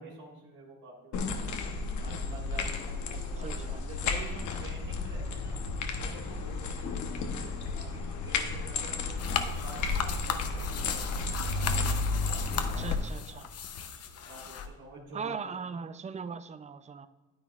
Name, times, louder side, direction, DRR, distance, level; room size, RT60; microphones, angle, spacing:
voice 1, 0.0-1.5 2.0-5.6 6.0-9.3 9.6-13.5 14.3-15.4, right 2 dB, 80° right, -3 dB, 1.8 m, -49 dB
sound 1, 1.1-13.0, left 3 dB, 75° left, 0.9 m, -33 dB
voice 2, 3.4-3.8 7.2-7.5 12.5-13.5 15.1-17.1, right 5 dB, 25° right, 13 dB, 0.4 m, -40 dB
sound 2, 9.2-14.7, left 7 dB, 55° left, 0.7 m, -36 dB
9.6 x 9.0 x 2.4 m, 1.3 s
cardioid pair, 90°, 30 cm